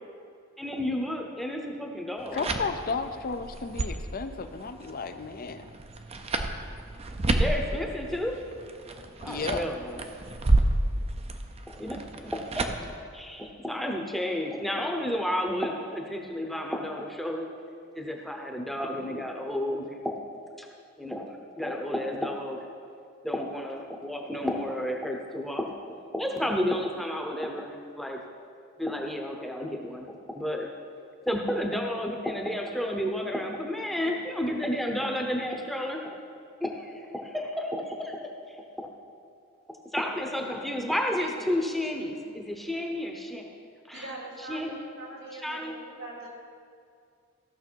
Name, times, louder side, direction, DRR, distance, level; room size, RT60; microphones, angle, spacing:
voice 1, 0.6-2.5 7.3-8.3 9.2-10.0 11.7-12.3 12.6-17.5 17.9-20.1 20.6-20.7 21.0-22.6 23.2-25.7 26.1-28.2 28.8-30.7 31.3-36.2 36.6-38.9 39.9-43.4 43.9-44.0 44.5-44.8 45.4-45.8, left 1 dB, ahead, 1 dB, 0.8 m, -31 dB
sound 1, 2.2-12.9, right 2 dB, 30° right, 0.6 m, -30 dB
voice 2, 2.3-5.7 9.3-9.7, left 4 dB, 45° left, 9 dB, 0.5 m, -33 dB
voice 3, 43.9-46.3, right 2 dB, 85° right, -3 dB, 2.5 m, -42 dB
15.0 x 6.4 x 4.5 m, 2.3 s
head